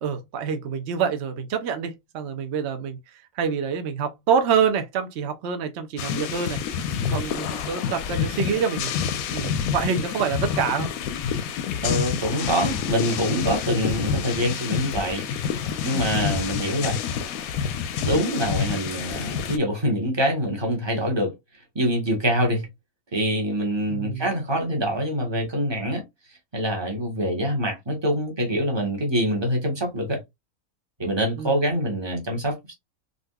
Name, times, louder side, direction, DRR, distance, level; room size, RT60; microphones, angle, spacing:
voice 1, 0.0-3.0 3.4-6.6 7.1-8.9 9.3-10.9 16.2-16.5 23.9-24.2 31.4-31.6, right 6 dB, 60° right, 0.9 m, -26 dB
sound 1, 6.0-19.6, left 7 dB, 90° left, 1.0 m, -28 dB
voice 2, 11.8-15.2 15.8-17.0 18.0-21.3 21.7-22.7 23.1-26.0 26.5-30.2 31.0-32.7, equal, 20° right, 1.0 m, -25 dB
3.9 x 2.5 x 2.2 m
omnidirectional pair, 1.4 m